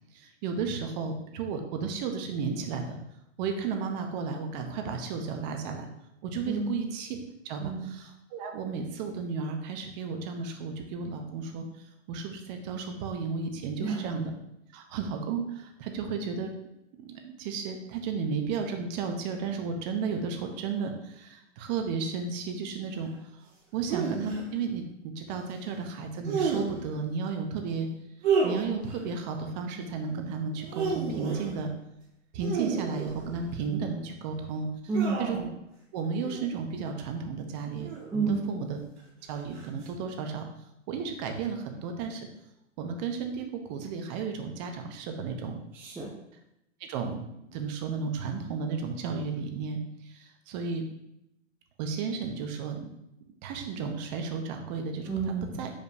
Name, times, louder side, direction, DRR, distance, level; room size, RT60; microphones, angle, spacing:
voice 1, 0.1-3.0 3.4-5.9 6.2-7.1 7.4-11.6 12.1-14.3 14.7-16.5 16.9-23.1 23.7-27.9 28.4-31.7 32.3-34.7 35.2-35.5 35.9-38.8 39.3-40.4 40.9-42.3 42.8-45.6 46.8-50.8 51.8-52.9 53.4-55.1 55.6-55.7, right 5 dB, 35° right, 4 dB, 0.8 m, -33 dB
voice 2, 6.5-6.8 7.6-7.9 13.8-14.1 34.9-35.3 38.1-38.5 45.7-46.1 55.1-55.6, right 4 dB, 5° right, -4 dB, 0.5 m, -30 dB
sound 1, 23.9-24.4 26.2-26.9 28.2-29.0 30.5-31.6 32.4-33.6 34.9-35.5 36.2-36.5 37.8-38.3 39.5-39.9, right 5 dB, 55° right, 1.9 m, -31 dB
6.8 x 5.1 x 2.7 m, 0.83 s
hypercardioid pair, 130°, 38 cm